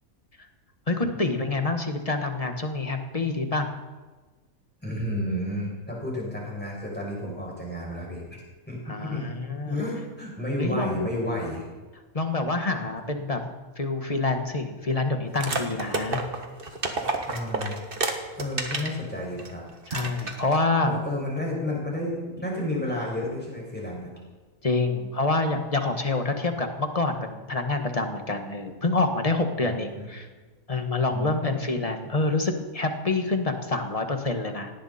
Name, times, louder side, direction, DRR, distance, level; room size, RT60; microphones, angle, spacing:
voice 1, 0.9-3.7 8.9-9.8 10.6-11.1 12.1-13.4 13.8-16.2 19.9-21.0 24.6-30.3 30.7-34.7, left 3 dB, 25° left, 6 dB, 1.4 m, -27 dB
voice 2, 4.8-9.3 9.6-11.6 17.2-17.8 18.3-19.6 20.9-24.1 29.6-30.1 31.1-31.5, left 1 dB, 5° left, -3 dB, 5.9 m, -31 dB
sound 1, 15.3-19.0 19.4-19.5 19.9-20.6, right 3 dB, 40° right, 1.7 m, -30 dB
18.0 x 17.5 x 4.3 m, 1.3 s
omnidirectional pair, 1.5 m